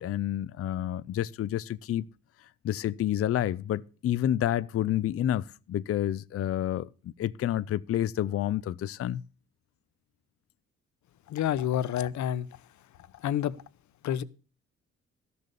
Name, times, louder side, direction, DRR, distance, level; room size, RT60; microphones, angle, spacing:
voice 1, 0.0-2.1 2.6-9.2, left 11 dB, 50° left, 0.5 m, -29 dB
voice 2, 11.3-12.6 13.1-13.6 14.0-14.2, left 11 dB, 70° left, 0.8 m, -29 dB
13.5 x 6.9 x 6.6 m
cardioid pair, 90°, 30 cm